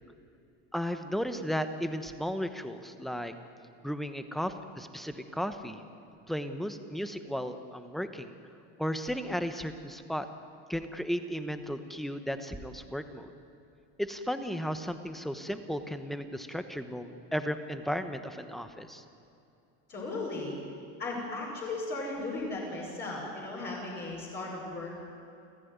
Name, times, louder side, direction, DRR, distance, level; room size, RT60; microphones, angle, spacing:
voice 1, 0.7-3.3 3.8-5.8 6.3-8.3 8.8-10.3 10.7-13.3 14.0-19.0, equal, ahead, 9 dB, 1.1 m, -35 dB
voice 2, 19.9-20.6 21.0-24.9, left 2 dB, 30° left, -4 dB, 5.8 m, -36 dB
29.5 x 15.5 x 9.5 m, 2.7 s
cardioid pair, 155°, 36 cm